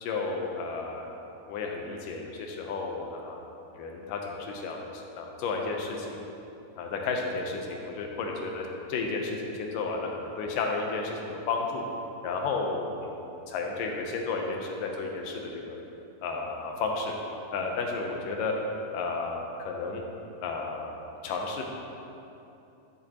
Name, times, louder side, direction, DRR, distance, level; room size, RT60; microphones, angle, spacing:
voice 1, 0.0-1.1 1.5-3.4 3.7-6.3 6.8-11.9 12.2-15.8 16.2-17.1 17.5-18.5 18.9-20.0 20.4-20.9 21.2-21.6, left 4 dB, 75° left, 1 dB, 2.2 m, -32 dB
12.0 x 7.7 x 2.9 m, 2.8 s
omnidirectional pair, 4.3 m